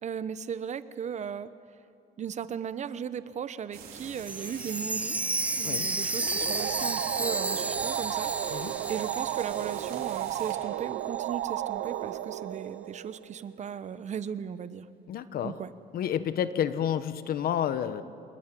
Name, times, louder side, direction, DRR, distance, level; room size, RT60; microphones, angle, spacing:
voice 1, 0.0-1.5 2.2-5.2 5.6-14.9 15.4-15.7, right 8 dB, 45° right, 14 dB, 1.0 m, -37 dB
sound 1, 3.7-10.5, right 6 dB, 65° right, 5.3 m, -45 dB
Chime, 4.2-10.1 10.5-10.6 11.1-11.2, right 2 dB, 10° right, 0.5 m, -32 dB
sound 2, 6.2-13.6, right 13 dB, 80° right, 1.0 m, -34 dB
voice 2, 15.1-15.6 15.9-18.0, left 9 dB, 60° left, 12 dB, 1.2 m, -30 dB
27.5 x 20.0 x 9.2 m, 2.5 s
cardioid pair, 110°, 17 cm